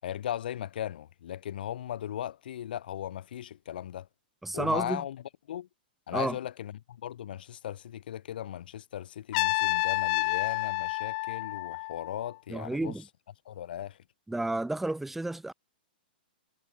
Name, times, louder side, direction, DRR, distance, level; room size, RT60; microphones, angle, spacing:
voice 1, 0.0-4.1 4.5-5.2 5.5-5.7 6.1-13.0 13.4-14.0, left 11 dB, 70° left, 6.4 m, -37 dB
voice 2, 4.4-5.0 6.1-6.4 12.5-13.0 14.3-15.5, right 2 dB, 5° right, 1.7 m, -31 dB
Trumpet, 9.3-12.3, left 25 dB, 45° left, 1.0 m, -29 dB
hypercardioid pair, 135°, 5 cm